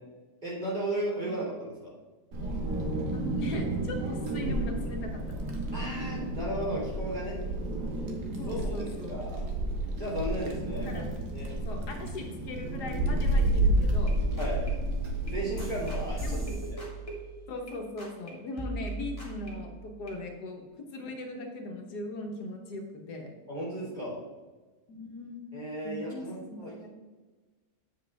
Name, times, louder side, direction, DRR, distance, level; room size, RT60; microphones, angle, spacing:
voice 1, 0.4-1.9 5.7-7.4 8.5-9.5 9.9-11.0 11.3-11.5 11.9-12.1 14.3-14.6 15.2-16.4 16.7-16.8 23.5-24.2 25.5-26.9, right 1 dB, 25° right, -6 dB, 3.0 m, -35 dB
Wind, 2.3-16.5, right 1 dB, 80° right, 1.7 m, -31 dB
voice 2, 3.1-5.4 8.4-9.5 10.8-11.1 11.6-14.2 16.2-16.6 17.5-20.6 20.9-23.3 24.9-26.9, left 2 dB, 75° left, 3 dB, 1.6 m, -39 dB
sound 1, 13.5-13.6 13.8-17.7 18.0-18.3 18.6-20.2, right 2 dB, 20° left, 2.2 m, -39 dB
8.4 x 7.3 x 3.4 m, 1.3 s
omnidirectional pair, 1.7 m